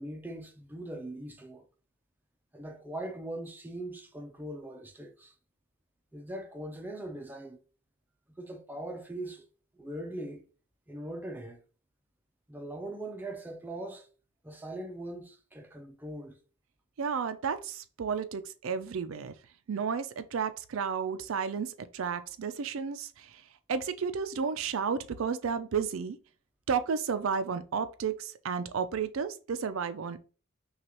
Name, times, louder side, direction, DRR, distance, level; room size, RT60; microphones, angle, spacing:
voice 1, 0.0-1.6 2.5-5.3 6.1-7.6 8.3-9.5 9.7-10.4 10.9-11.6 12.5-14.1 14.4-16.4, right 1 dB, 10° right, 0.5 m, -41 dB
voice 2, 17.0-19.3 19.7-23.4 23.7-26.2 26.7-30.2, right 6 dB, 70° right, 0.4 m, -32 dB
6.0 x 2.4 x 2.9 m
head